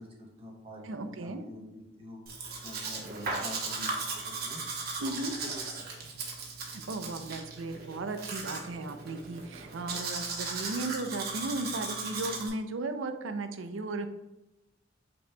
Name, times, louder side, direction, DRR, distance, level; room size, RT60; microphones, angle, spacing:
voice 1, 0.0-2.2 2.6-5.5 6.0-6.1, equal, 30° right, 0 dB, 1.0 m, -47 dB
voice 2, 0.8-1.4 5.0-5.3 6.6-14.1, right 2 dB, 90° right, 9 dB, 0.5 m, -36 dB
Domestic sounds home sounds, 2.3-12.5, right 3 dB, 55° right, 0.9 m, -37 dB
5.5 x 4.2 x 2.2 m, 0.98 s
head